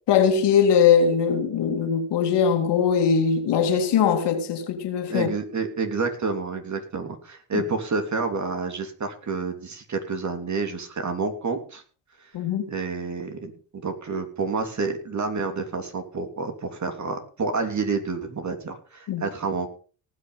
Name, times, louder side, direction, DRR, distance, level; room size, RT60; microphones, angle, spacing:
voice 1, 0.1-5.3 7.5-7.6 12.3-12.7 19.1-19.2, left 7 dB, 60° left, 2.8 m, -21 dB
voice 2, 5.1-11.8 12.7-19.7, right 4 dB, 35° right, 3.2 m, -29 dB
18.5 x 6.4 x 5.6 m
hypercardioid pair, 60°, 47 cm